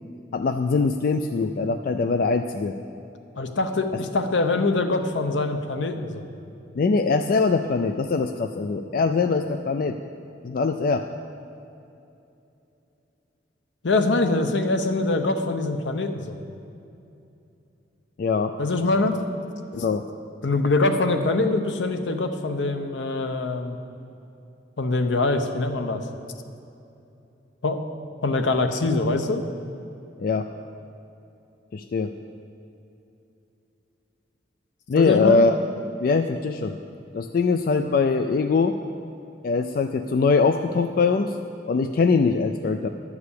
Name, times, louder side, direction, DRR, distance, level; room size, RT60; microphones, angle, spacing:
voice 1, 0.3-2.7 6.8-9.9 10.4-11.1 18.2-18.5 19.7-20.0 30.2-30.5 31.7-32.1 34.9-35.5 36.0-36.7 37.1-38.8 39.4-41.3 41.7-42.9, left 4 dB, 50° left, 7 dB, 0.3 m, -22 dB
voice 2, 3.4-6.3 13.8-16.4 18.6-19.2 20.4-23.8 24.8-26.0 27.6-27.8 28.2-29.4 34.9-35.5, left 2 dB, 80° left, 7 dB, 0.8 m, -23 dB
11.5 x 4.8 x 8.4 m, 2.8 s
head